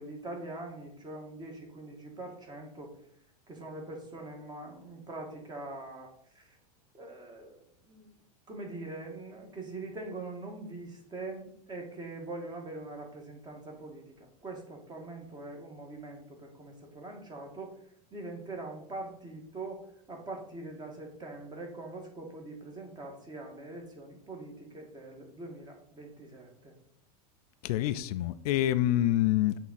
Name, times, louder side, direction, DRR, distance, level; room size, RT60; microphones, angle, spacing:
voice 1, 0.0-2.9 3.5-6.1 6.3-6.6 6.9-7.6 7.9-8.1 8.5-14.0 14.4-17.7 18.1-26.7, right 2 dB, 20° right, 1.5 m, -43 dB
voice 2, 27.6-29.6, left 13 dB, 70° left, 0.4 m, -26 dB
7.8 x 3.6 x 4.1 m
supercardioid pair, 130°, 20 cm